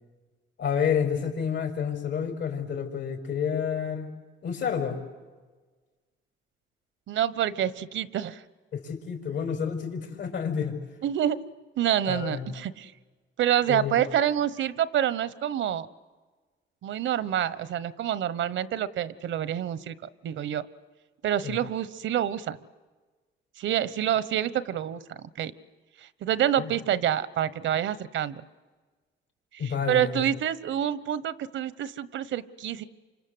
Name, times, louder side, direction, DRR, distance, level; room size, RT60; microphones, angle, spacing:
voice 1, 0.6-4.1 4.4-5.0 8.7-10.7 12.1-12.5 13.7-14.0 21.4-21.6 26.6-26.7 29.6-30.2, left 7 dB, 65° left, 6 dB, 5.3 m, -29 dB
voice 2, 7.1-8.4 11.0-11.4 11.8-12.9 13.4-15.9 16.8-20.0 20.2-20.6 21.2-22.6 23.6-25.0 25.4-25.5 26.0-28.4 29.6-32.8, right 10 dB, 75° right, 17 dB, 1.2 m, -27 dB
28.5 x 26.0 x 8.0 m, 1.3 s
cardioid pair, 90°, 20 cm